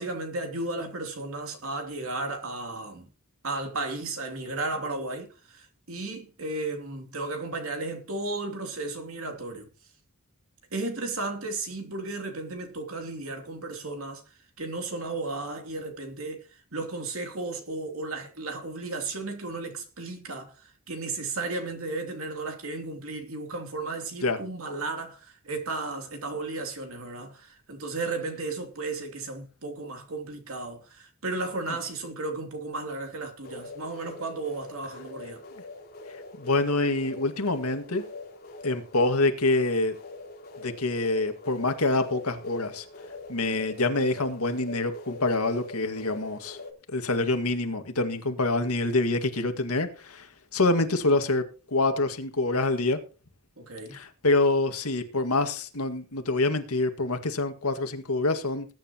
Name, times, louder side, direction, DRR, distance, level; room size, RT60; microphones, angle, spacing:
voice 1, 0.0-3.1 3.4-9.7 10.7-14.2 14.6-35.4 53.6-54.0, right 3 dB, 65° right, 3.0 m, -34 dB
sound 1, 33.4-46.7, left 2 dB, 45° left, 3.5 m, -44 dB
voice 2, 36.4-38.0 38.6-40.0 40.6-42.8 43.3-46.6 46.9-50.3 50.5-53.0 53.9-58.7, left 2 dB, 80° left, 1.9 m, -26 dB
20.5 x 9.5 x 3.0 m
head